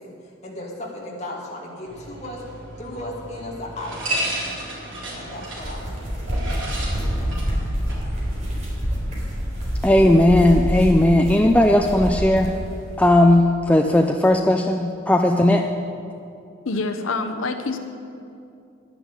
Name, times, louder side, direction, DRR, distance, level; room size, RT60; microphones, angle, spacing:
voice 1, 0.0-2.4 2.8-4.2 5.1-6.4 6.9-7.6, left 1 dB, 35° left, -3 dB, 2.5 m, -36 dB
sound 1, 1.9-9.8, right 1 dB, 70° right, 3.7 m, -34 dB
sound 2, 5.4-12.6, equal, 35° right, 3.8 m, -27 dB
voice 2, 9.8-12.5 13.0-15.7, left 1 dB, 5° left, 3 dB, 0.4 m, -16 dB
voice 3, 16.6-17.8, left 3 dB, 90° left, 7 dB, 0.8 m, -26 dB
11.0 x 10.0 x 8.2 m, 2.6 s
head